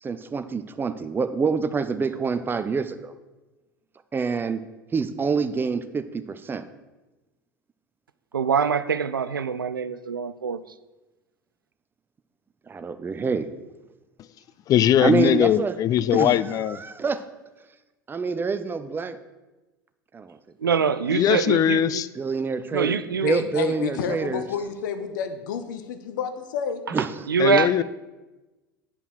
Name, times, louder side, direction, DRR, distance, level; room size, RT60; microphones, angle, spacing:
voice 1, 0.0-3.1 4.1-4.6 4.9-6.7 12.7-13.5 15.0-15.8 16.1-17.2 18.1-19.2 20.1-20.7 21.0-21.2 22.1-24.5 26.9-27.3, right 5 dB, 20° right, 10 dB, 0.6 m, -27 dB
voice 2, 8.3-10.6 20.6-22.0 22.7-23.4 27.3-27.8, right 6 dB, 80° right, 14 dB, 0.4 m, -24 dB
voice 3, 14.7-16.8 21.1-22.1 27.4-27.8, left 11 dB, 35° left, 16 dB, 0.4 m, -20 dB
voice 4, 23.2-26.8, left 7 dB, 65° left, 9 dB, 0.8 m, -30 dB
8.8 x 5.6 x 6.3 m, 1.1 s
figure-of-eight pair, 75°, 11 cm